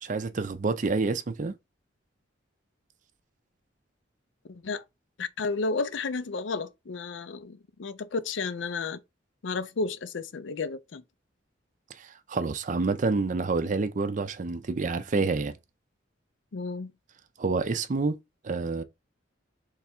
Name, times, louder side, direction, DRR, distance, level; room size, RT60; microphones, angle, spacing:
voice 1, 0.0-1.5 11.9-15.6 17.4-18.8, right 3 dB, 40° right, 0.4 m, -28 dB
voice 2, 4.5-4.8 5.2-9.0 9.4-11.0 16.5-16.9, left 4 dB, 75° left, 0.5 m, -32 dB
3.4 x 3.3 x 4.3 m
head